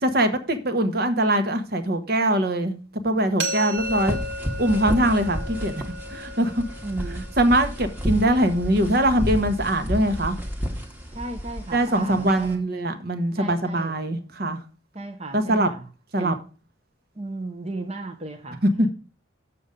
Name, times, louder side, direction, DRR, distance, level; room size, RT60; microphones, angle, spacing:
voice 1, 0.0-2.8 3.0-4.2 4.6-5.7 6.1-6.6 7.4-10.4 11.7-14.6 15.3-15.7 16.1-16.4 18.6-18.9, right 1 dB, 50° right, 1.1 m, -22 dB
sound 1, 3.4-9.2, equal, 70° right, 1.6 m, -35 dB
sound 2, 3.8-12.5, equal, 10° right, 1.2 m, -32 dB
voice 2, 6.8-7.3 11.1-12.5 13.4-13.9 14.9-15.8 16.2-16.4 17.2-18.6, right 2 dB, 30° right, 0.8 m, -34 dB
7.0 x 7.0 x 5.2 m
head